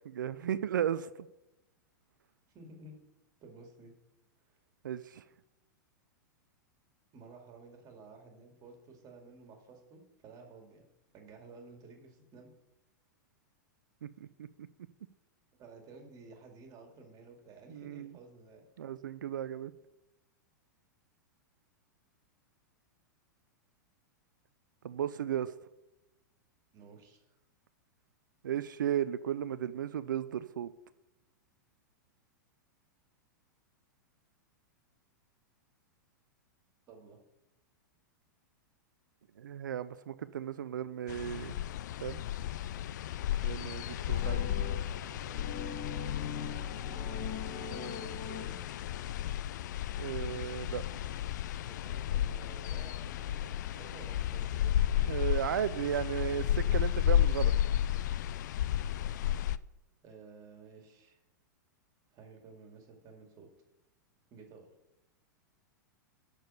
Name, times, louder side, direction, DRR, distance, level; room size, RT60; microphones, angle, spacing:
voice 1, 0.0-1.1 4.8-5.2 14.0-14.1 14.4-14.5 17.7-18.1 18.8-19.7 24.8-25.5 28.4-30.7 39.4-41.5 42.0-42.2 43.4-44.4 50.0-50.8 55.0-57.5, right 10 dB, 75° right, 14 dB, 0.4 m, -35 dB
voice 2, 2.5-3.0 3.4-3.9 7.1-10.8 11.1-12.5 15.6-18.7 26.7-27.2 36.9-37.2 44.3-44.7 46.8-48.6 51.6-54.8 60.0-61.2 62.1-63.5 64.3-64.7, right 3 dB, 35° right, 3 dB, 2.2 m, -53 dB
sound 1, 41.1-59.6, left 11 dB, 65° left, 0.4 m, -33 dB
sound 2, 44.0-49.0, left 5 dB, 35° left, 1.8 m, -42 dB
6.7 x 6.2 x 6.9 m, 0.93 s
hypercardioid pair, 105°, 10 cm